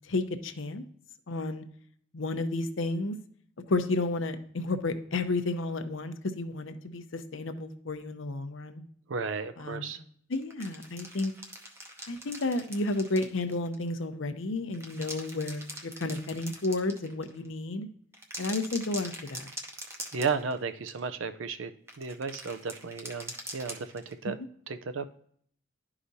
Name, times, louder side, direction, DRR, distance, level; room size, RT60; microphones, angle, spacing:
voice 1, 0.1-0.8 1.3-1.6 2.1-3.1 3.7-8.8 9.6-10.0 10.3-11.3 12.1-17.9 18.4-19.5, left 2 dB, 75° left, 9 dB, 0.7 m, -32 dB
voice 2, 9.1-10.0 20.1-21.7 22.0-24.4 24.7-25.0, right 5 dB, 80° right, 11 dB, 0.5 m, -34 dB
sound 1, 10.3-13.9 14.6-17.5 18.1-20.6 20.9-21.0 21.9-24.2, right 1 dB, 15° right, 0.7 m, -43 dB
11.5 x 4.9 x 2.7 m, 0.62 s
head